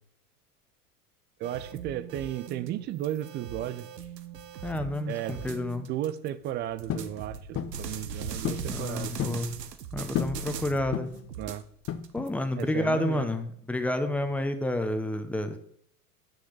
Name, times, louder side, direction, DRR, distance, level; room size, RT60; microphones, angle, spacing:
voice 1, 1.4-3.9 5.1-5.5 5.8-9.4 11.4-11.6 12.6-13.3, right 12 dB, 25° right, 15 dB, 0.3 m, -34 dB
sound 1, 1.4-6.3 6.8-11.0 11.3-12.6, right 6 dB, 80° right, 1.1 m, -40 dB
voice 2, 4.6-5.9 8.7-9.5 9.9-11.1 12.1-15.6, left 1 dB, 5° left, 8 dB, 0.9 m, -30 dB
sound 2, 6.9-7.1 7.6-7.8 8.4-8.7 9.0-9.4 10.1-10.4 10.9-11.3 11.9-12.4, left 9 dB, 30° left, 0.8 m, -32 dB
6.6 x 6.4 x 7.3 m, 0.67 s
hypercardioid pair, 95°, 47 cm